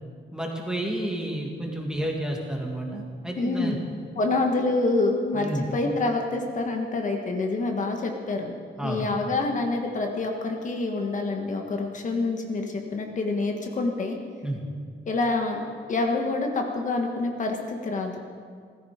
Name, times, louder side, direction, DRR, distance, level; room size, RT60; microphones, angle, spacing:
voice 1, 0.3-3.8 5.3-5.6 8.8-9.1 14.4-14.6, right 1 dB, 5° right, 0 dB, 2.2 m, -30 dB
voice 2, 3.4-3.8 4.1-8.6 8.8-14.2 15.1-15.6 15.9-18.1, left 3 dB, 40° left, 2 dB, 1.4 m, -27 dB
17.0 x 14.5 x 5.1 m, 2.1 s
wide cardioid pair, 160°, 19 cm